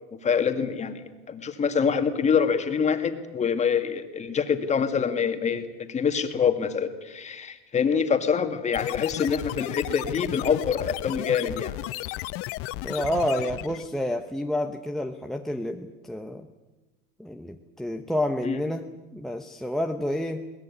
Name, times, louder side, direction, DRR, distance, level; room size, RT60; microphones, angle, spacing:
voice 1, 0.2-11.8 18.4-18.6, left 6 dB, 20° left, 7 dB, 2.1 m, -25 dB
sound 1, 8.7-13.9, left 18 dB, 45° left, 0.7 m, -34 dB
voice 2, 12.8-16.5 17.2-20.4, left 1 dB, ahead, 8 dB, 0.9 m, -29 dB
22.0 x 18.5 x 9.8 m, 1.2 s
supercardioid pair, 135°, 30 cm